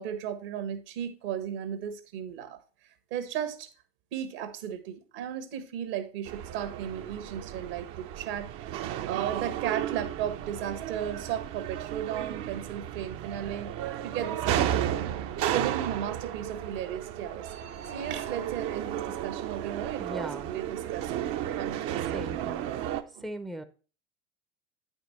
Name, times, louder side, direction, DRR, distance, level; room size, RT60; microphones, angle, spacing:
voice 1, 0.0-3.7 4.1-13.7 14.0-15.0 15.5-17.5 17.9-21.3 21.6-23.2, right 9 dB, 65° right, 1.3 m, -36 dB
sound 1, 6.2-23.0, right 11 dB, 50° right, 0.7 m, -33 dB
voice 2, 20.0-20.5 22.1-22.7 23.2-23.6, right 1 dB, ahead, 0.6 m, -38 dB
8.9 x 5.3 x 4.1 m
hypercardioid pair, 75°, 31 cm